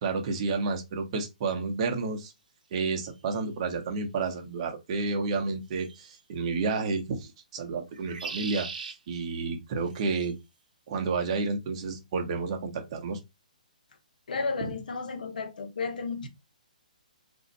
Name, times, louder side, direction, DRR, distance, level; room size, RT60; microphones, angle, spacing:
voice 1, 0.0-2.3 2.7-10.3 10.9-13.2 14.6-14.7, right 4 dB, 40° right, 0.9 m, -31 dB
sound 1, 3.3-3.4 5.8-6.2 7.9-9.0 9.9-10.3, right 5 dB, 70° right, 0.8 m, -39 dB
voice 2, 14.3-16.3, left 4 dB, 75° left, 0.7 m, -33 dB
2.6 x 2.4 x 4.0 m
hypercardioid pair, 150°, 5 cm